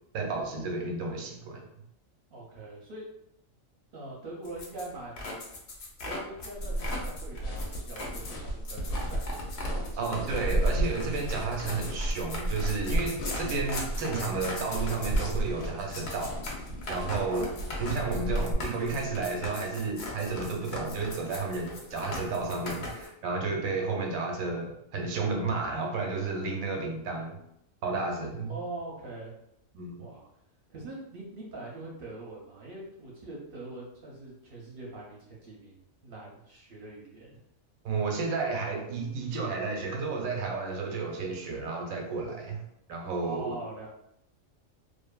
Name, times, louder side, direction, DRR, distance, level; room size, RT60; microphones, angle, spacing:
voice 1, 0.1-1.6 10.0-16.4 16.9-17.5 17.8-27.4 27.8-28.5 29.7-30.1 37.8-42.6 42.9-43.5, right 4 dB, 90° right, 1 dB, 1.0 m, -32 dB
voice 2, 2.3-3.1 3.9-5.4 6.0-10.1 17.0-17.3 28.5-29.3 30.0-30.2 30.7-37.4 43.2-43.9, right 2 dB, 55° right, -3 dB, 0.7 m, -43 dB
sound 1, 4.4-23.1, left 2 dB, 60° left, 0.8 m, -39 dB
sound 2, 6.5-18.5, right 1 dB, 85° left, 1.0 m, -33 dB
2.5 x 2.5 x 2.2 m, 0.77 s
omnidirectional pair, 1.4 m